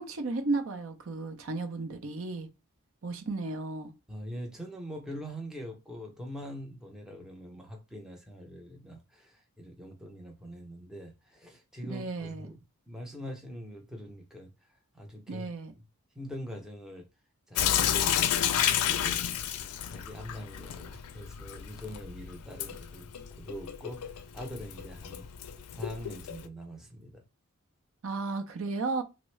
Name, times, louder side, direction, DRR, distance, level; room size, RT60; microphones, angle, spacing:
voice 1, 0.0-2.5 3.0-3.9 11.8-12.5 15.3-15.7 28.0-29.0, right 3 dB, 60° right, 0.6 m, -34 dB
voice 2, 4.1-12.5 12.9-14.5 14.9-15.5 16.2-17.1 17.5-19.3 19.9-23.1 23.4-25.3 25.7-27.2, equal, ahead, 0.5 m, -43 dB
Sink (filling or washing) / Drip, 17.6-26.5, left 10 dB, 90° left, 0.4 m, -31 dB
3.5 x 2.0 x 3.1 m
head